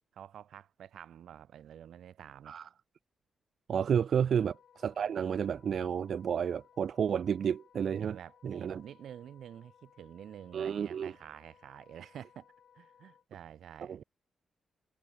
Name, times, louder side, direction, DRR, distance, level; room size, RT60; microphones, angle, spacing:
voice 1, 0.1-2.6 4.2-4.3 8.0-12.5 12.7-14.0, right 10 dB, 85° right, 2.9 m, -49 dB
voice 2, 3.7-8.2 8.4-8.8 10.5-11.1 13.9-14.0, right 8 dB, 60° right, 0.3 m, -31 dB
Wind instrument woodwind instrument, 4.2-13.2, left 8 dB, 65° left, 6.4 m, -63 dB
wide cardioid pair, 145°, 0 cm